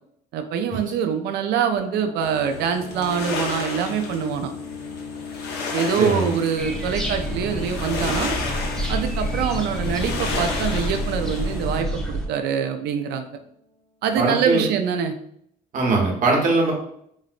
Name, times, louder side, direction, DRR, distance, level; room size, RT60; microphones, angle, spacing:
voice 1, 0.3-4.5 5.7-8.3 8.9-13.3 14.0-15.2, right 7 dB, 75° right, 7 dB, 0.4 m, -24 dB
sound 1, 1.8-13.3, left 4 dB, 50° left, 0.9 m, -38 dB
sound 2, 2.2-11.8, left 4 dB, 80° left, 0.7 m, -33 dB
voice 2, 6.0-6.3 14.2-14.6 15.7-16.7, right 3 dB, 50° right, 0 dB, 0.9 m, -21 dB
sound 3, 6.6-12.3, right 1 dB, 5° left, 0.7 m, -28 dB
3.9 x 2.0 x 2.5 m, 0.69 s
cardioid pair, 110°, 17 cm